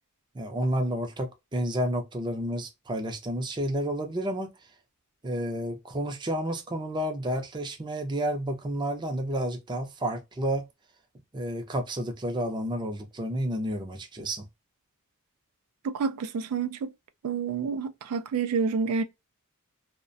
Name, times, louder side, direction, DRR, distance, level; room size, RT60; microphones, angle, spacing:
voice 1, 0.3-4.5 5.2-10.7 11.3-14.5, right 1 dB, 20° right, 0.4 m, -30 dB
voice 2, 15.8-16.9 17.2-19.0, right 5 dB, 80° right, 0.3 m, -28 dB
2.3 x 2.1 x 2.5 m
head